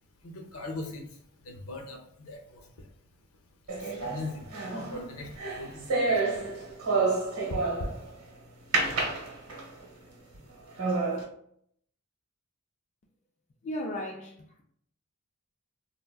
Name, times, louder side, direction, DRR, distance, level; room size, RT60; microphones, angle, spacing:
voice 1, 0.2-2.9 3.8-6.4, left 2 dB, 70° left, 0.6 m, -41 dB
sound 1, 3.7-8.1 8.7-9.8 10.3-10.4 10.8-11.2, right 3 dB, 85° right, 1.0 m, -29 dB
voice 2, 13.6-14.6, left 1 dB, 30° left, 0.3 m, -36 dB
3.4 x 2.1 x 2.2 m
head